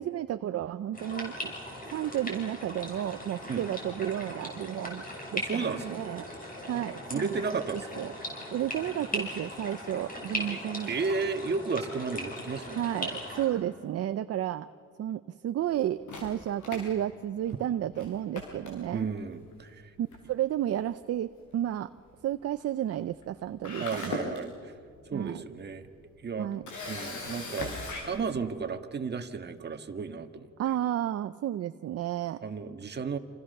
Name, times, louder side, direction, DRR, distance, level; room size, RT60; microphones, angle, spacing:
voice 1, 0.0-1.5 1.9-5.0 5.3-6.3 6.7-7.4 7.7-8.1 8.5-10.9 12.7-14.7 15.0-19.1 20.0-21.9 22.2-24.1 25.1-25.4 26.4-26.6 30.6-32.4, right 11 dB, 55° right, 11 dB, 0.6 m, -32 dB
sound 1, 0.9-13.5, left 1 dB, 30° left, 6.9 m, -39 dB
voice 2, 5.4-5.8 7.1-7.9 10.4-10.6 10.9-12.9 18.9-19.8 23.8-24.7 25.1-25.9 26.2-27.7 28.0-30.5 32.4-33.2, right 5 dB, 35° right, 7 dB, 1.7 m, -33 dB
Camera, 16.1-17.6 18.0-18.1 18.3-19.2 20.1-20.4 20.7-20.8 23.2-23.3 23.6-24.4 25.0-25.1 26.7-28.0, left 3 dB, 80° left, 7.2 m, -38 dB
28.5 x 27.5 x 6.7 m, 2.2 s
cardioid pair, 120°, 30 cm